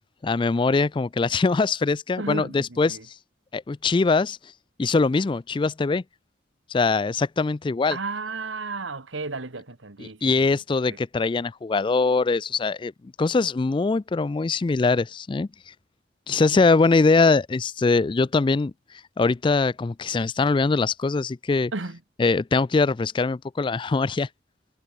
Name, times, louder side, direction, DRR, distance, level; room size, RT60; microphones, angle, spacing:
voice 1, 0.2-3.0 3.5-4.4 4.8-6.0 6.7-8.0 10.0-12.9 13.2-15.5 16.3-18.7 19.2-21.7 22.2-24.3, left 3 dB, 25° left, 0.3 m, -22 dB
voice 2, 2.2-3.0 7.9-10.5 21.7-22.0, right 3 dB, 80° right, 1.7 m, -33 dB
head